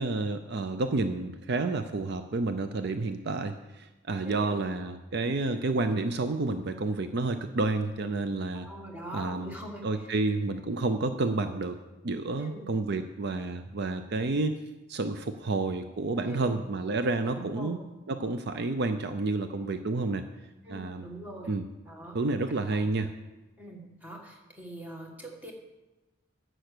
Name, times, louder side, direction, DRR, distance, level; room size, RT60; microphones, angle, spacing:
voice 1, 0.0-8.7 9.1-9.5 9.8-11.8 12.0-14.6 14.9-17.8 18.1-20.2 20.7-21.1 21.5-21.6 22.1-23.1, right 3 dB, 55° right, 9 dB, 0.5 m, -30 dB
voice 2, 4.2-4.6 8.5-10.1 12.4-12.6 16.2-16.6 17.3-17.8 20.6-21.5 21.8-22.2 22.7-22.8 23.6-25.5, right 1 dB, 10° right, 0 dB, 1.7 m, -43 dB
10.5 x 7.7 x 6.7 m, 1.1 s
head